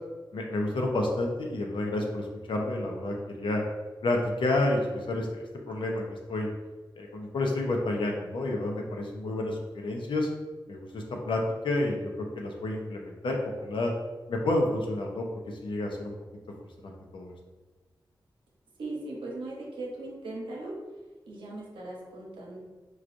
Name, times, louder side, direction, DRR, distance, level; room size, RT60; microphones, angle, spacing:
voice 1, 0.3-3.6 4.0-6.0 6.3-6.5 7.0-10.3 10.7-13.9 14.3-16.1 16.8-17.3, left 2 dB, 80° left, 1 dB, 0.6 m, -30 dB
voice 2, 18.8-20.8 21.3-22.6, right 2 dB, 90° right, -2 dB, 0.8 m, -38 dB
4.6 x 2.4 x 2.5 m, 1.2 s
cardioid pair, 50°, 8 cm